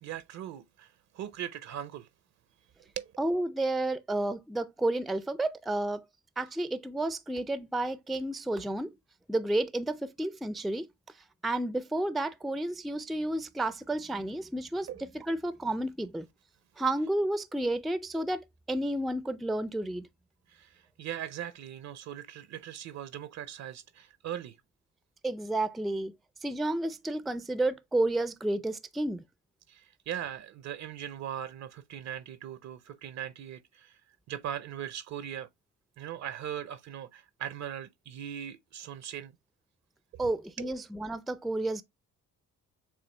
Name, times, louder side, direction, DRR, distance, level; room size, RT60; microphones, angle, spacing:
voice 1, 0.0-2.1 3.0-3.1 14.9-15.0 20.5-24.6 29.7-34.0 34.3-35.5 36.0-39.3 40.1-40.7, right 10 dB, 65° right, 0.5 m, -40 dB
voice 2, 3.2-6.0 6.4-8.9 9.3-10.9 11.4-16.3 16.8-20.1 25.2-26.1 26.4-29.2 40.2-41.8, right 1 dB, ahead, 0.3 m, -31 dB
6.9 x 2.4 x 3.2 m
cardioid pair, 90°, 30 cm